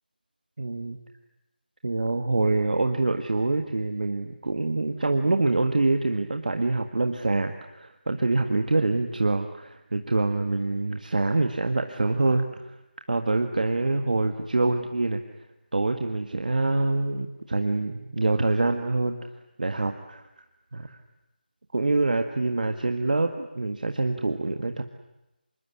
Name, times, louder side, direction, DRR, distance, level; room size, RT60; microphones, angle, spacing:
voice 1, 0.6-1.0 1.8-12.8 13.1-15.2 15.7-19.2 19.6-20.2 20.7-21.0 21.7-24.8, right 2 dB, 55° right, 5 dB, 1.8 m, -25 dB
26.5 x 21.5 x 10.0 m, 0.96 s
figure-of-eight pair, 165°, 5 cm